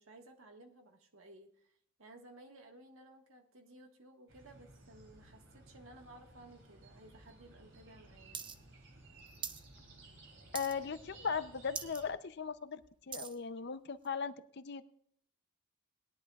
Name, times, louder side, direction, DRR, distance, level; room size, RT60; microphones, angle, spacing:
voice 1, 0.0-1.7 2.0-8.4, right 1 dB, 80° right, 4 dB, 1.6 m, -57 dB
sound 1, 4.3-12.1, right 2 dB, 60° right, 3.2 m, -58 dB
sound 2, 8.3-8.6 8.8-9.6 10.0-10.2 10.5-11.0 11.4-11.5 11.7-12.0 12.5-13.4 14.0-14.1, right 7 dB, 25° right, 0.6 m, -43 dB
voice 2, 10.5-12.8 13.1-14.8, left 6 dB, 55° left, 13 dB, 0.6 m, -38 dB
20.0 x 10.5 x 2.4 m, 0.65 s
head